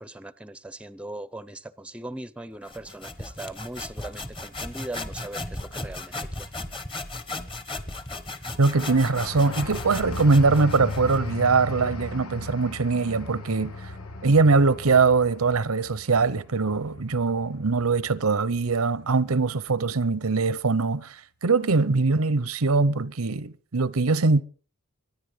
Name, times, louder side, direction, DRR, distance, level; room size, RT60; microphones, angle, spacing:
voice 1, 0.0-6.5, right 1 dB, 5° right, 0.7 m, -39 dB
sound 1, 2.7-11.3, left 2 dB, 25° left, 1.3 m, -36 dB
voice 2, 8.6-13.9 14.2-24.4, right 4 dB, 90° right, 0.8 m, -22 dB
sound 2, 8.7-15.4, left 3 dB, 65° left, 2.7 m, -45 dB
sound 3, 9.0-19.4 19.8-20.1, left 2 dB, 90° left, 1.4 m, -38 dB
24.0 x 10.0 x 5.1 m
head